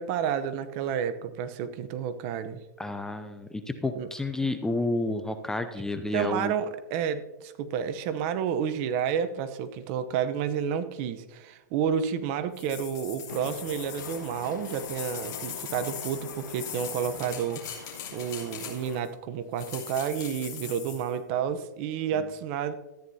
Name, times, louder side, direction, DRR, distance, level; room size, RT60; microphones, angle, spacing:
voice 1, 0.0-2.6 4.0-4.1 6.1-22.7, right 8 dB, 40° right, 11 dB, 0.8 m, -30 dB
voice 2, 2.8-6.5, left 2 dB, 5° left, 9 dB, 0.5 m, -30 dB
sound 1, 12.5-19.1 19.6-21.1, left 8 dB, 35° left, 2.9 m, -41 dB
Train, 13.3-19.0, left 7 dB, 85° left, 1.1 m, -44 dB
14.0 x 9.4 x 2.8 m, 1.1 s
hypercardioid pair, 135°, 10 cm